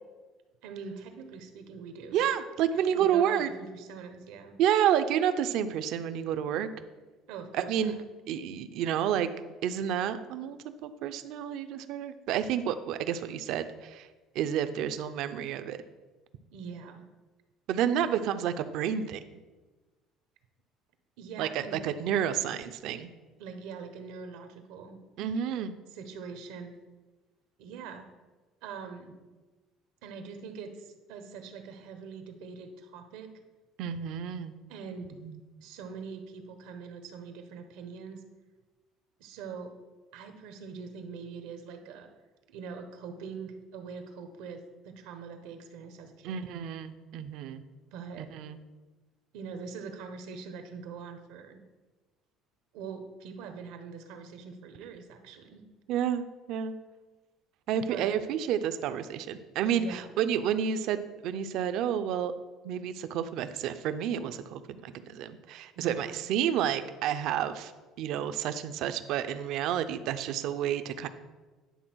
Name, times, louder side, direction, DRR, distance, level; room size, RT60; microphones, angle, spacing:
voice 1, 0.6-2.2 2.7-4.6 7.3-7.9 16.5-17.0 21.2-21.8 23.4-25.0 25.9-26.7 27.6-28.1 28.6-29.1 30.0-33.3 34.7-35.2 35.6-38.2 39.2-39.8 40.1-42.1 42.5-46.4 47.9-48.3 49.3-51.6 52.7-55.6 57.9-58.2 59.7-60.1 65.8-66.2, right 5 dB, 85° right, 7 dB, 1.1 m, -43 dB
voice 2, 2.1-3.5 4.6-6.7 7.5-7.9 8.3-9.3 9.6-14.1 14.3-15.8 17.7-19.2 21.4-23.1 25.2-25.7 33.8-34.5 35.2-35.4 46.2-47.6 48.2-48.6 55.9-56.7 57.7-62.3 62.6-67.7 68.0-71.1, right 9 dB, 65° right, 11 dB, 0.5 m, -30 dB
10.0 x 3.8 x 6.2 m, 1.2 s
cardioid pair, 145°, 0 cm